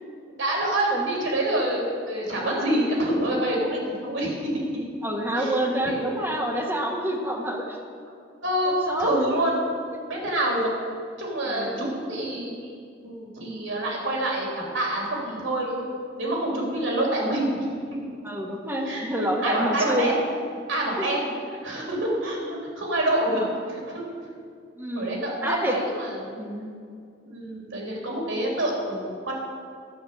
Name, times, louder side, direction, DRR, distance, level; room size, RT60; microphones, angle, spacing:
voice 1, 0.4-4.5 5.3-6.0 8.4-9.6 10.1-10.9 11.2-12.7 13.0-14.5 14.7-17.7 18.8-20.2 20.7-22.4 22.8-24.0 24.9-26.4 27.2-29.3, right 1 dB, 80° right, -2 dB, 3.1 m, -27 dB
voice 2, 2.4-2.8 5.0-7.8 8.6-9.4 11.4-11.8 18.2-20.1 21.0-21.2 22.4-22.5 24.7-25.8 26.4-26.8, right 1 dB, 10° right, -1 dB, 1.6 m, -28 dB
11.5 x 6.7 x 8.0 m, 2.2 s
head